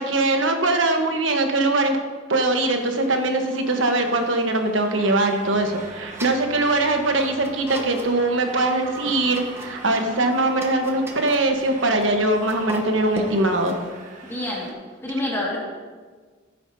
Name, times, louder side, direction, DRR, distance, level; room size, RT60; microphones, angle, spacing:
voice 1, 0.0-2.0 2.3-13.7, right 2 dB, 80° right, 5 dB, 1.2 m, -21 dB
sound 1, 2.5-14.7, right 2 dB, 40° right, 1.4 m, -42 dB
sound 2, 5.4-13.8, equal, 15° right, 0.9 m, -40 dB
voice 2, 14.3-14.7 15.0-15.6, left 1 dB, 15° left, -4 dB, 1.9 m, -27 dB
14.5 x 9.1 x 2.8 m, 1.5 s
head